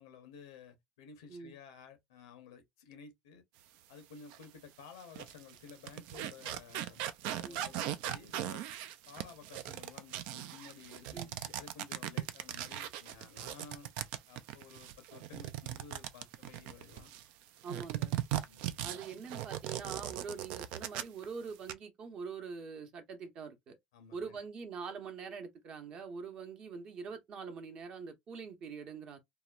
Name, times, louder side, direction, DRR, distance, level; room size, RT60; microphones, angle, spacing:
voice 1, 0.0-3.4 3.9-7.0 7.3-8.7 9.1-13.9 14.3-17.1 18.5-18.8 23.9-24.4, left 6 dB, 90° left, 0.9 m, -54 dB
sound 1, 4.3-4.4 5.0-17.3 17.7-21.2 21.5-21.7, right 12 dB, 70° right, 0.3 m, -39 dB
voice 2, 17.6-18.1 18.8-23.8 24.1-29.2, right 5 dB, 50° right, 0.9 m, -44 dB
2.8 x 2.1 x 2.4 m
supercardioid pair, 90°, 2 cm